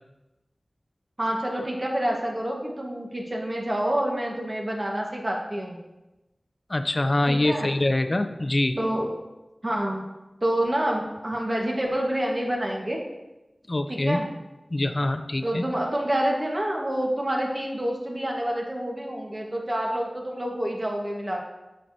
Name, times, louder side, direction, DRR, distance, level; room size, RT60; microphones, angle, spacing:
voice 1, 1.2-5.8 7.3-7.7 8.8-9.1 9.6-10.0 10.4-13.0 13.9-14.3 15.4-21.4, right 1 dB, 40° right, -1 dB, 1.3 m, -27 dB
voice 2, 6.7-8.8 13.7-14.2 14.7-15.7, left 1 dB, 45° left, 8 dB, 0.5 m, -24 dB
7.6 x 6.4 x 2.7 m, 1.0 s
wide cardioid pair, 55°, 0 cm